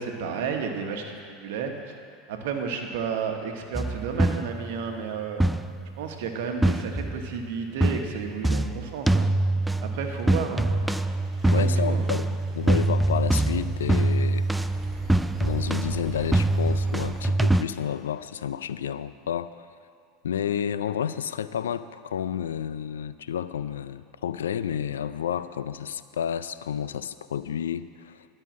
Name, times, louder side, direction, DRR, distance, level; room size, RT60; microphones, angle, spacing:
voice 1, 0.0-1.9 2.3-5.4 6.0-9.3 9.8-10.7 11.4-12.0, right 6 dB, 70° right, 4 dB, 1.2 m, -32 dB
sound 1, 3.7-4.8 5.4-6.0 6.6-7.4 7.8-17.6, right 2 dB, 5° right, 0.4 m, -24 dB
Engine, 9.6-17.2, right 4 dB, 20° right, 1.2 m, -43 dB
voice 2, 11.5-14.5 15.4-19.7 20.2-28.3, left 9 dB, 85° left, 14 dB, 0.3 m, -30 dB
11.5 x 5.5 x 7.5 m, 2.3 s
hypercardioid pair, 85°, 0 cm